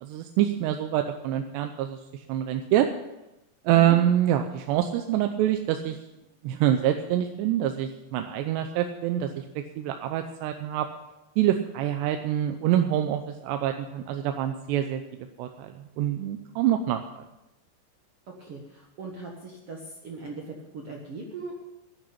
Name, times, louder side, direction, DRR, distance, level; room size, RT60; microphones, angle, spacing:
voice 1, 0.0-2.9 3.6-6.0 6.4-10.9 11.4-17.2, right 11 dB, 85° right, 6 dB, 2.8 m, -26 dB
voice 2, 18.4-21.5, right 3 dB, 70° right, -1 dB, 1.4 m, -39 dB
10.5 x 9.2 x 8.4 m, 0.95 s
omnidirectional pair, 4.9 m